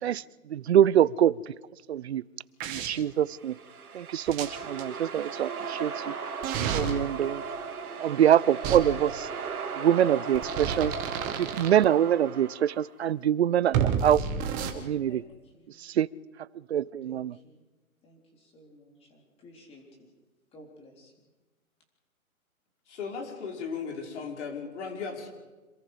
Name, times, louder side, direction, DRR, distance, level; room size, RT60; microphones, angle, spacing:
voice 1, 0.5-1.5 1.9-2.2 2.7-3.6 3.9-6.1 6.7-7.4 8.0-9.3 9.8-10.9 11.4-14.2 14.7-15.2 15.8-16.1 16.7-17.3, right 10 dB, 50° right, 0.6 m, -24 dB
sound 1, 2.6-2.9 4.3-4.8 6.4-6.9 8.6-8.8 10.3-11.7 13.7-14.7, right 7 dB, 20° right, 1.7 m, -29 dB
sound 2, 3.1-13.0, right 5 dB, 80° right, 2.5 m, -37 dB
voice 2, 17.0-17.5 18.0-20.1 20.5-21.1, left 1 dB, 15° left, 3.9 m, -54 dB
voice 3, 22.9-25.3, left 5 dB, 50° left, 5.6 m, -36 dB
26.5 x 22.0 x 5.1 m
hypercardioid pair, 150°, 43 cm